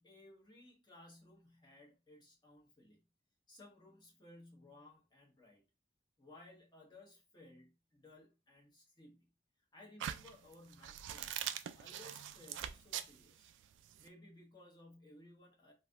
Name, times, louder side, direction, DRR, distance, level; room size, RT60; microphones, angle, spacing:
voice 1, 0.0-3.0 3.5-5.6 6.2-9.3 9.7-13.5 14.0-15.7, left 1 dB, 25° left, 1.1 m, -59 dB
sound 1, 10.0-14.1, right 10 dB, 70° right, 0.3 m, -43 dB
3.2 x 2.6 x 2.4 m
head